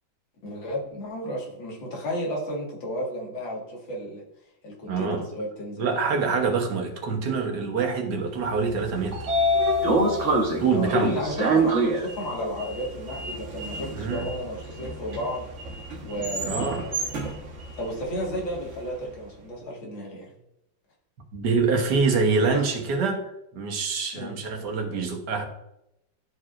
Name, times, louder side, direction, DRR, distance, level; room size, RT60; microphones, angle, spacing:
voice 1, 0.4-4.2 4.6-5.9 10.7-15.5 16.0-16.9 17.8-20.4 22.5-22.7 24.1-24.3, equal, 80° left, -2 dB, 2.5 m, -33 dB
voice 2, 4.9-5.2 5.8-9.3 10.6-11.2 13.9-14.3 16.4-16.9 21.3-25.4, right 4 dB, 60° right, 2 dB, 1.7 m, -25 dB
Sliding door, 8.7-18.8, right 1 dB, 45° right, 1.3 m, -27 dB
12.5 x 4.8 x 2.5 m, 0.83 s
omnidirectional pair, 2.1 m